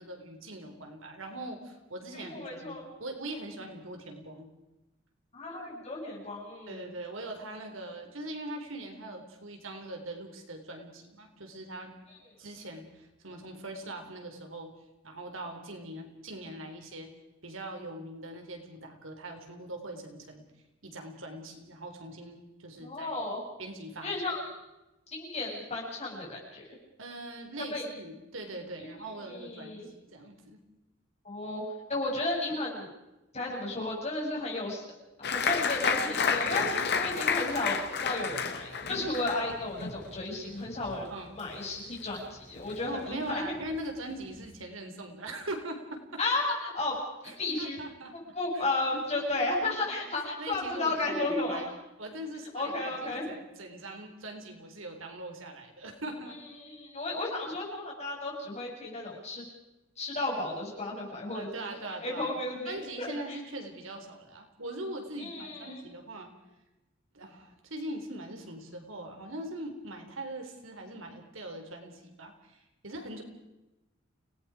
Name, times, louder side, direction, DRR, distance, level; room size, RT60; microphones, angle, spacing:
voice 1, 0.0-4.5 6.7-11.9 12.4-14.7 15.0-17.1 17.4-20.4 20.8-23.1 23.6-24.4 27.0-29.8 30.1-30.6 41.1-41.4 42.9-46.0 47.2-48.1 48.5-48.7 48.9-49.7 50.4-51.7 52.0-56.4 61.3-62.4 62.7-66.3 67.1-73.2, right 1 dB, 75° right, 4 dB, 3.8 m, -41 dB
voice 2, 2.1-2.9 5.3-6.8 22.8-23.4 24.0-24.5 25.1-26.6 27.7-27.9 28.8-29.9 31.2-31.6 31.9-32.9 33.3-34.8 35.3-41.1 41.4-43.6 46.2-46.9 47.2-47.8 48.3-51.6 52.5-53.3 56.6-59.4 60.0-61.7 62.0-63.4 65.2-65.8, left 2 dB, 35° left, -2 dB, 7.7 m, -33 dB
Applause, 35.2-42.3 42.6-43.3 43.7-43.8 44.1-44.6, left 6 dB, 55° left, 1.9 m, -31 dB
30.0 x 18.5 x 5.0 m, 0.99 s
head